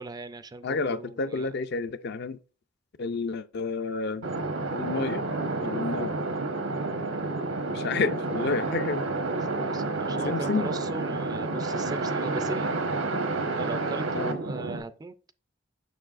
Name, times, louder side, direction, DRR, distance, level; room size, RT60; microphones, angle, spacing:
voice 1, 0.0-1.5 9.6-12.7 13.6-15.1, right 3 dB, 20° right, 0.3 m, -38 dB
voice 2, 0.6-2.4 3.0-4.3 4.7-5.3 5.6-6.2 7.7-9.0 10.2-10.7 14.1-14.4, left 4 dB, 55° left, 0.4 m, -30 dB
sound 1, 4.2-14.8, right 3 dB, 90° right, 1.1 m, -30 dB
6.8 x 6.3 x 2.5 m
head